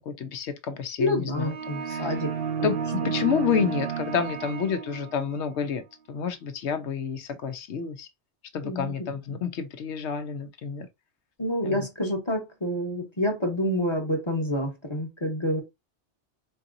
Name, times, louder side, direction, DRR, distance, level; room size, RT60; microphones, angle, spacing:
voice 1, 0.1-1.5 1.9-2.1 2.6-2.8 3.0-5.8 6.1-8.1 8.5-10.9 11.6-11.8, left 6 dB, 70° left, 0.9 m, -29 dB
voice 2, 1.0-2.3 8.6-8.9 11.4-15.6, left 1 dB, 25° left, 1.0 m, -28 dB
sound 1, 1.4-5.4, right 6 dB, 60° right, 0.7 m, -31 dB
4.5 x 2.8 x 2.5 m
omnidirectional pair, 1.2 m